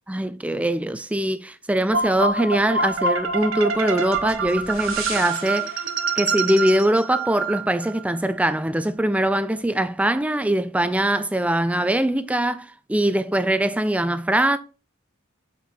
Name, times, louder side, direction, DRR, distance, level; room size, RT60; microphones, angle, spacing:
voice 1, 0.1-5.8 6.2-14.6, right 1 dB, 5° right, 0.4 m, -22 dB
sound 1, 1.9-8.0, right 4 dB, 70° right, 1.3 m, -26 dB
7.6 x 5.3 x 4.3 m
head